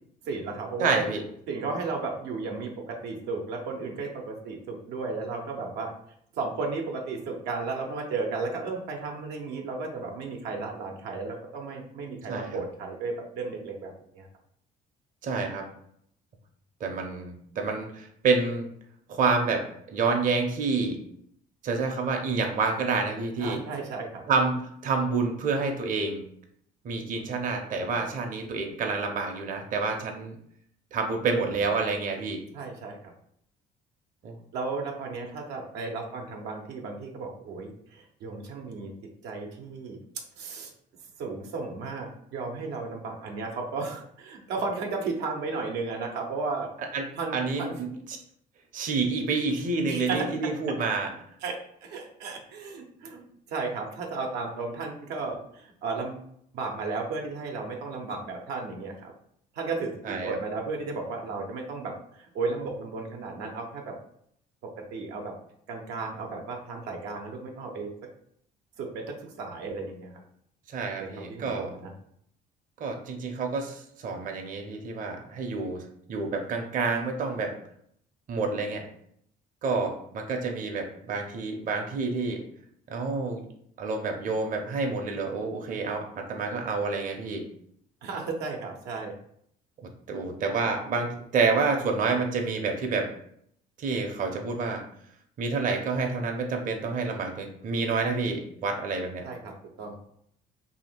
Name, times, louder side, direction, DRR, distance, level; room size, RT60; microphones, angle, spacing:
voice 1, 0.2-1.0 1.5-5.9 6.3-14.3 23.4-24.2 32.5-33.1 34.5-38.9 39.2-40.0 40.4-40.7 41.2-46.7 47.2-47.8 49.9-50.2 51.4-51.5 51.8-53.2 53.5-56.2 56.5-59.1 59.5-63.9 64.9-65.3 65.7-67.9 68.8-70.2 71.0-71.9 88.0-89.1 99.2-99.5 99.8-100.0, right 4 dB, 90° right, 1 dB, 0.8 m, -34 dB
voice 2, 0.8-1.2 12.3-12.6 15.2-15.6 16.8-18.7 19.1-19.6 19.9-21.0 21.6-23.6 24.3-26.2 26.8-30.4 30.9-32.4 34.2-34.4 46.9-47.0 47.3-47.9 48.7-51.1 60.0-60.4 70.7-71.7 72.8-77.5 78.3-78.9 79.6-82.5 82.9-83.5 83.8-87.5 89.8-93.1 93.8-94.8 95.4-99.3, right 4 dB, 50° right, 2 dB, 0.7 m, -28 dB
2.8 x 2.8 x 4.3 m, 0.68 s
cardioid pair, 110°, 17 cm